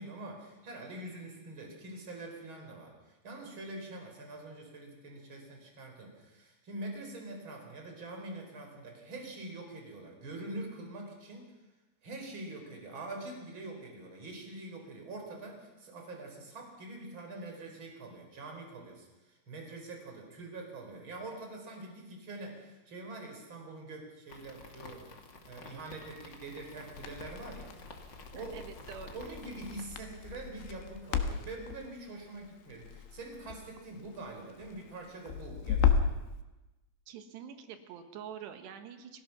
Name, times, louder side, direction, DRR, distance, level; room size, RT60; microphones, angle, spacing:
voice 1, 0.0-11.5 12.0-27.8 28.3-28.6 29.1-36.0, right 2 dB, 30° right, 2 dB, 5.1 m, -44 dB
sound 1, 24.3-29.8, left 3 dB, 35° left, 2.1 m, -51 dB
Crackle, 26.9-36.2, left 7 dB, 90° left, 3.6 m, -34 dB
voice 2, 28.3-29.2 37.1-39.2, right 8 dB, 75° right, 7 dB, 3.5 m, -46 dB
28.5 x 18.5 x 6.2 m, 1.1 s
omnidirectional pair, 5.1 m